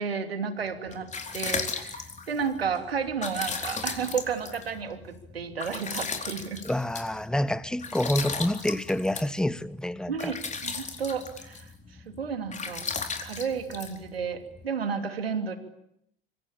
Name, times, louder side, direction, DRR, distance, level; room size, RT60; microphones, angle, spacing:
voice 1, 0.0-6.6 10.1-10.4 10.6-11.7 12.0-12.9 13.2-15.6, right 6 dB, 85° right, 3.0 m, -32 dB
sound 1, 0.7-14.6, left 5 dB, 25° left, 4.4 m, -36 dB
voice 2, 6.6-10.3, left 1 dB, ahead, 1.2 m, -28 dB
26.0 x 25.0 x 8.8 m
figure-of-eight pair, 70°, 29 cm